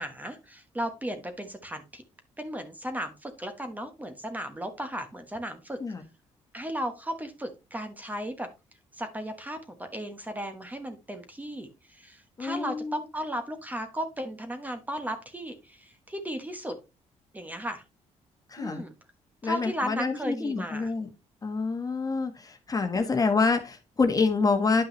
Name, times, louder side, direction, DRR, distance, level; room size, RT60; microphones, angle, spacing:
voice 1, 0.0-2.0 2.4-5.8 6.5-8.5 8.9-16.8 17.3-17.8 18.6-18.9 19.4-20.9 22.9-23.2, equal, 15° right, 7 dB, 1.2 m, -35 dB
voice 2, 12.4-13.0 18.5-18.8 19.4-21.1 21.4-24.9, left 4 dB, 30° left, 6 dB, 1.4 m, -27 dB
10.0 x 5.6 x 3.2 m, 0.26 s
cardioid pair, 100°, 12 cm